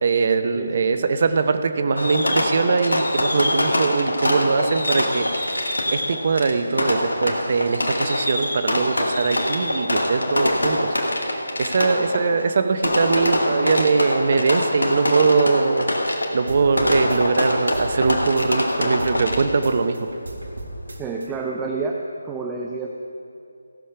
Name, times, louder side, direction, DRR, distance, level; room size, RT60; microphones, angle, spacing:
voice 1, 0.0-20.1, right 4 dB, 45° right, 9 dB, 0.7 m, -22 dB
voice 2, 0.5-1.1 11.9-12.5 21.0-22.0 22.2-22.9, right 4 dB, 10° right, 0 dB, 0.6 m, -30 dB
Fireworks, 2.0-19.7, left 1 dB, 80° left, 1.6 m, -24 dB
sound 1, 16.5-18.7 19.0-21.3, right 1 dB, 75° right, 1.7 m, -36 dB
16.0 x 6.5 x 5.7 m, 2.7 s
figure-of-eight pair, 155°, 0 cm